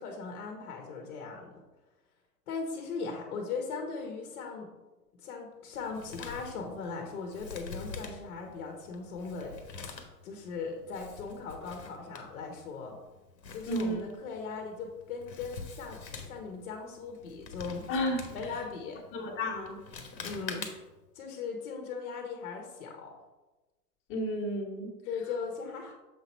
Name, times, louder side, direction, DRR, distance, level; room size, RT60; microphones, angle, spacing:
voice 1, 0.0-1.6 2.5-4.7 5.2-9.6 10.2-13.0 13.5-16.0 16.3-17.8 18.3-19.0 20.2-20.7 21.1-23.1 25.0-25.9, left 5 dB, 50° left, 2 dB, 1.4 m, -38 dB
Male speech man speaking, 5.7-21.1, left 5 dB, 85° left, 1.4 m, -46 dB
voice 2, 13.7-14.0 17.9-18.2 19.1-19.8 24.1-24.9, equal, 25° left, 0 dB, 1.7 m, -32 dB
7.4 x 4.0 x 4.5 m, 1.1 s
hypercardioid pair, 125°, 50 cm